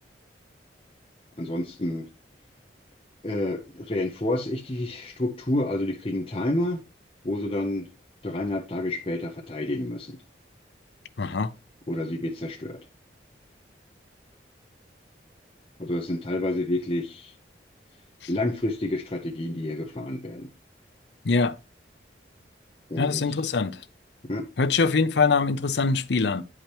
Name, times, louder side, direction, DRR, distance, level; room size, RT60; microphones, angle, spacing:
voice 1, 1.4-2.1 3.2-6.8 7.2-7.9 8.2-10.2 11.9-12.8 15.8-17.3 18.3-20.5 22.9-23.4 24.2-24.5, left 1 dB, 30° left, 0.8 m, -29 dB
voice 2, 11.2-11.5 21.2-21.5 23.0-23.8 24.6-26.4, left 4 dB, 70° left, 0.6 m, -23 dB
10.0 x 5.0 x 3.0 m
head